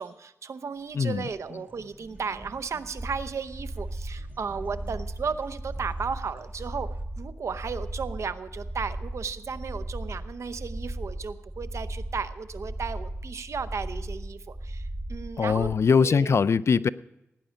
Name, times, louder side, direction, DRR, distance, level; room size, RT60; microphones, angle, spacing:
voice 1, 0.0-6.9 7.2-15.7 16.0-16.4, right 5 dB, 75° right, 12 dB, 0.7 m, -34 dB
Dog / Bird, 0.8-7.0, right 2 dB, 35° right, 1.5 m, -52 dB
voice 2, 0.9-1.3 15.4-16.9, left 5 dB, 65° left, 17 dB, 0.4 m, -22 dB
sound 1, 1.5-3.0 4.2-6.5, left 1 dB, 20° left, 1.5 m, -54 dB
sound 2, 3.0-15.7, right 1 dB, 10° right, 1.7 m, -36 dB
17.0 x 10.0 x 5.2 m, 0.88 s
wide cardioid pair, 80°, 5 cm